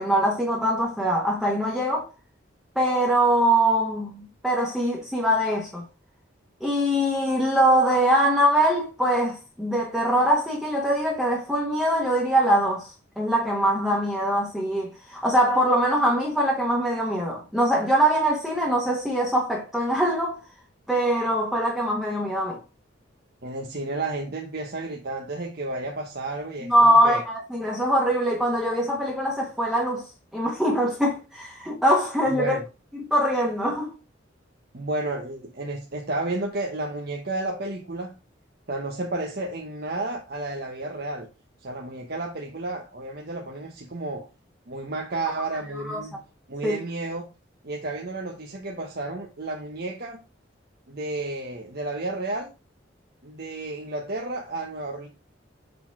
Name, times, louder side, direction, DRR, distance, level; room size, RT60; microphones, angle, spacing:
voice 1, 0.0-2.1 2.7-5.8 6.6-12.9 13.2-20.4 20.9-22.6 26.7-30.1 30.3-32.6 32.9-33.9 45.8-46.0 46.6-46.8, right 1 dB, ahead, 1.3 m, -23 dB
voice 2, 23.4-27.2 32.3-32.6 34.7-38.1 38.7-41.3 41.6-44.3 44.7-46.2 46.5-47.2 47.6-50.2 50.9-52.5 53.2-55.1, right 2 dB, 50° right, 1.0 m, -32 dB
6.9 x 4.1 x 4.7 m
head